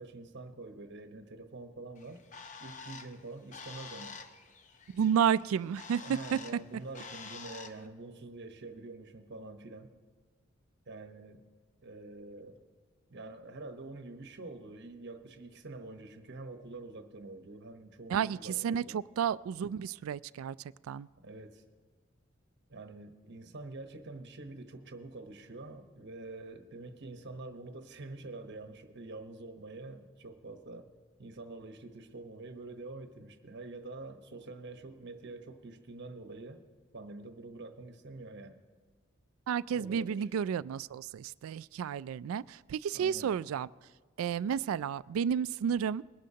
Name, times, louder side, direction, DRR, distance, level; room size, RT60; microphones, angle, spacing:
voice 1, 0.0-2.2 2.6-4.2 5.9-9.9 10.9-11.4 11.8-12.6 13.1-19.0 21.2-21.6 22.7-30.9 31.2-36.6 36.9-38.6 39.7-40.3 42.9-43.4, right 2 dB, 60° right, 7 dB, 1.1 m, -46 dB
Bird, 2.0-7.9, left 5 dB, 40° left, 0.6 m, -48 dB
voice 2, 4.9-6.4 18.1-20.6 20.9-21.1 39.5-43.7 44.2-46.0, right 8 dB, 75° right, 18 dB, 0.3 m, -31 dB
22.0 x 11.5 x 2.8 m, 1.5 s
head